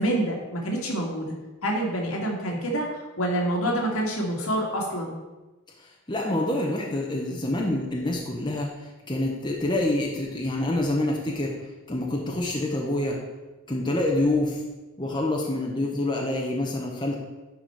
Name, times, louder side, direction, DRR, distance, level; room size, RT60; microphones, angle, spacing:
voice 1, 0.0-1.3 1.6-5.1, right 1 dB, 75° left, -1 dB, 1.9 m, -27 dB
voice 2, 5.8-11.6 11.9-13.2 13.7-14.6 15.0-17.2, left 1 dB, 20° left, -1 dB, 0.9 m, -27 dB
10.5 x 4.3 x 4.7 m, 1.1 s
head